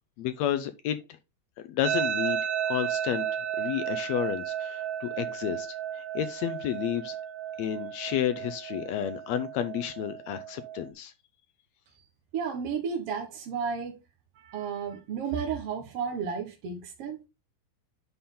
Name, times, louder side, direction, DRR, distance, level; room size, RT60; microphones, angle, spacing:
voice 1, 0.2-1.0 1.7-2.4 2.7-3.3 3.6-7.1 7.6-11.1, left 10 dB, 85° left, 1.5 m, -31 dB
sound 1, 1.8-10.9, right 9 dB, 90° right, 1.4 m, -33 dB
voice 2, 12.3-14.0 14.3-17.3, right 6 dB, 55° right, 1.8 m, -33 dB
11.0 x 4.3 x 3.7 m
omnidirectional pair, 3.9 m